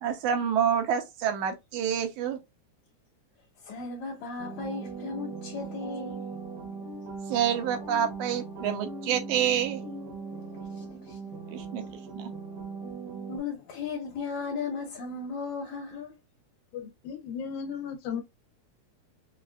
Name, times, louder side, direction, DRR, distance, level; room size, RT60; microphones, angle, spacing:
voice 1, 0.0-2.4 7.3-9.8 11.5-11.8 12.2-12.3, right 8 dB, 85° right, 2.1 m, -27 dB
voice 2, 3.6-6.3 10.4-10.5 10.8-11.4 13.3-16.1, left 5 dB, 70° left, 2.1 m, -36 dB
sound 1, 4.4-13.4, right 4 dB, 60° right, 0.9 m, -39 dB
voice 3, 16.7-18.2, left 7 dB, 90° left, 2.2 m, -35 dB
5.3 x 2.4 x 2.3 m
omnidirectional pair, 3.4 m